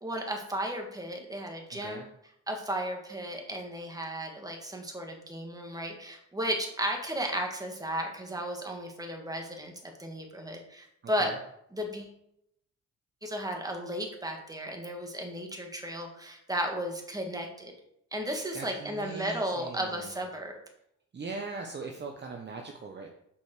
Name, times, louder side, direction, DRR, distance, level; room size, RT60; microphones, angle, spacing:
voice 1, 0.0-2.0 2.5-11.3 11.7-12.1 13.2-17.7 18.1-20.5, equal, 10° right, 2 dB, 2.3 m, -34 dB
voice 2, 1.7-2.1 11.0-11.4 18.5-20.2 21.1-23.1, right 3 dB, 35° right, 2 dB, 1.1 m, -40 dB
7.5 x 5.3 x 6.7 m, 0.77 s
cardioid pair, 90°, 30 cm